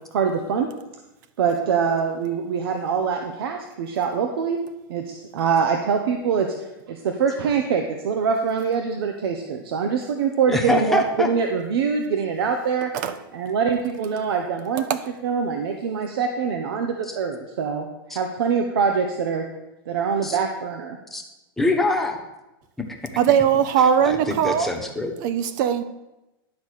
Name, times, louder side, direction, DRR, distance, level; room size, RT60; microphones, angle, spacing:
voice 1, 0.1-0.7 1.4-4.6 4.9-12.9 13.3-14.9 15.2-19.4 19.9-21.0, right 6 dB, 80° right, 5 dB, 0.9 m, -24 dB
voice 2, 10.5-11.3 17.0-17.2 18.1-18.2 20.2-20.4 21.1-21.2 21.6-22.2 22.9-23.0 24.1-25.1, left 2 dB, ahead, 1 dB, 1.1 m, -24 dB
voice 3, 23.2-24.8 25.2-25.8, right 8 dB, 50° right, 12 dB, 0.5 m, -20 dB
10.5 x 4.1 x 6.4 m, 1.0 s
supercardioid pair, 145°, 12 cm